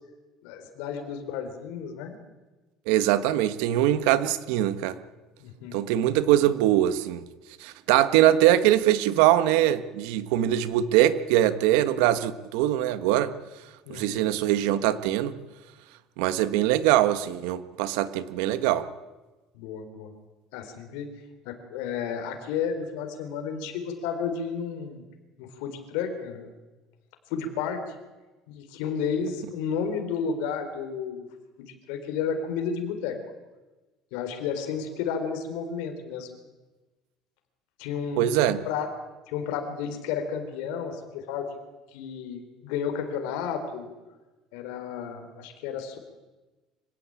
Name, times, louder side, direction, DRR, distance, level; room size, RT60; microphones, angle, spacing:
voice 1, 0.4-2.2 5.4-5.9 13.9-14.3 19.5-20.1 20.5-25.0 25.4-26.5 27.3-27.9 28.5-31.3 31.6-33.2 34.1-36.3 37.8-38.9 39.3-41.6 41.9-43.9 44.5-46.0, left 6 dB, 80° left, 6 dB, 4.1 m, -32 dB
voice 2, 2.9-5.0 5.7-7.2 7.6-13.3 13.9-15.3 16.2-18.8 38.2-38.6, right 13 dB, 85° right, 13 dB, 1.3 m, -22 dB
25.0 x 17.0 x 8.9 m, 1.2 s
cardioid pair, 175°, 0 cm